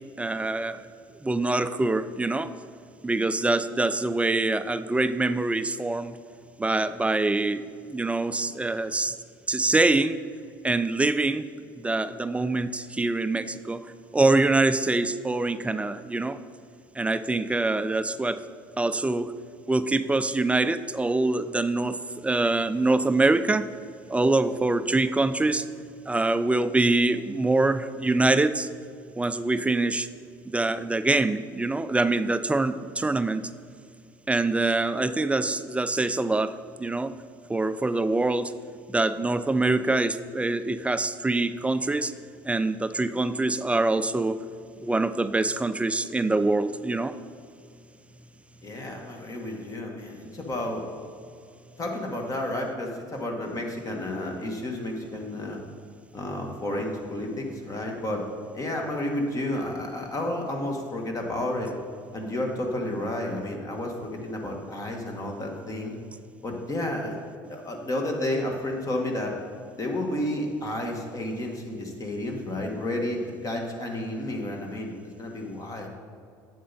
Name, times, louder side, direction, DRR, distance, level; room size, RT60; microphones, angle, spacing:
voice 1, 0.2-0.9 1.2-2.5 3.0-6.2 6.6-9.2 9.5-10.2 10.6-13.9 14.1-16.4 16.9-18.4 18.8-19.3 19.7-23.7 24.1-25.7 26.1-28.7 29.2-30.1 30.5-33.5 34.3-37.1 37.5-38.6 38.9-42.1 42.4-44.4 44.8-47.1, right 2 dB, 10° right, 12 dB, 0.4 m, -25 dB
voice 2, 48.6-50.8 51.8-55.6 56.1-58.2 58.5-61.7 62.1-66.0 66.4-69.4 69.8-75.9, left 1 dB, 30° left, 1 dB, 1.8 m, -31 dB
8.6 x 7.4 x 4.2 m, 2.4 s
hypercardioid pair, 70°, 11 cm